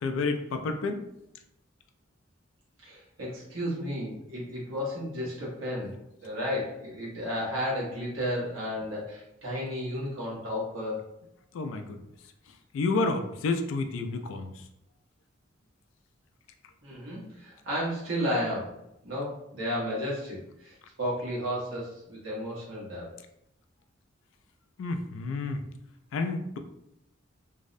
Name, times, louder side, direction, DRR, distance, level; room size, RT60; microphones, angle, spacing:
voice 1, 0.0-1.0 11.5-12.0 12.7-14.5 24.8-25.6 26.1-26.6, left 3 dB, 80° left, 7 dB, 0.3 m, -30 dB
voice 2, 2.8-11.1 16.8-18.8 19.0-23.1, equal, 90° right, -5 dB, 1.0 m, -33 dB
2.6 x 2.0 x 2.4 m, 0.82 s
head